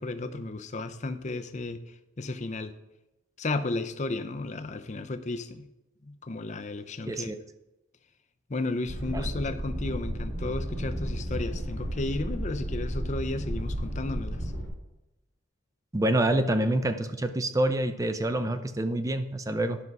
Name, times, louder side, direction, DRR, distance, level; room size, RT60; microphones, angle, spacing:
voice 1, 0.0-1.8 2.2-2.7 3.4-5.7 6.0-7.3 8.5-14.5, left 2 dB, 35° left, 9 dB, 0.6 m, -33 dB
voice 2, 7.1-7.4 9.1-9.3 15.9-19.8, right 1 dB, 15° right, 9 dB, 0.5 m, -27 dB
sound 1, 8.9-14.7, equal, 85° right, 2.9 m, -33 dB
10.0 x 6.0 x 5.4 m, 0.94 s
head